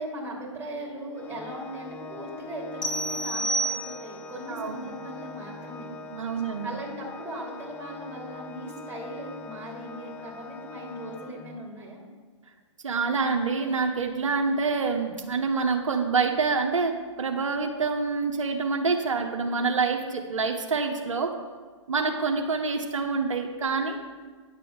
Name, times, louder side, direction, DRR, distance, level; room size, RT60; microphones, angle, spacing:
voice 1, 0.0-5.9 6.6-12.0, right 1 dB, 15° right, -3 dB, 2.5 m, -38 dB
Organ, 1.1-11.9, left 3 dB, 10° left, 0.3 m, -43 dB
sound 1, 2.8-4.3, right 1 dB, 80° left, 1.3 m, -29 dB
voice 2, 6.1-6.7 12.8-21.3 21.9-24.0, right 4 dB, 80° right, 3 dB, 1.1 m, -26 dB
9.8 x 6.8 x 5.1 m, 1.5 s
hypercardioid pair, 130°, 16 cm